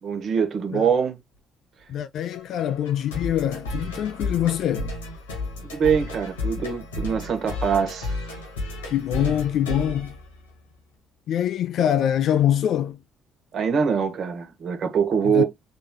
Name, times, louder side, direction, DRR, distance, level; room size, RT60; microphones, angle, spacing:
voice 1, 0.0-1.1 5.6-8.2 13.5-15.4, right 6 dB, 55° right, 1.4 m, -23 dB
voice 2, 1.9-4.9 8.9-10.2 11.3-13.0 15.2-15.4, left 10 dB, 65° left, 0.3 m, -24 dB
sound 1, 2.3-10.9, left 2 dB, 90° left, 1.3 m, -33 dB
3.8 x 2.9 x 3.8 m
hypercardioid pair, 50°, 0 cm